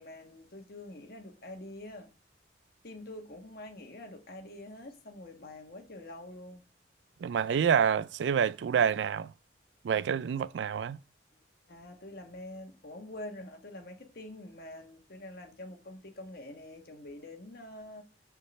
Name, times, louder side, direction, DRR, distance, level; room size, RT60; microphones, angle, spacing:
voice 1, 0.0-2.1 2.8-6.6 11.7-18.0, left 1 dB, 55° left, 1.3 m, -46 dB
voice 2, 7.2-9.3 9.8-11.0, right 7 dB, 75° right, 0.3 m, -27 dB
6.3 x 3.7 x 5.3 m
head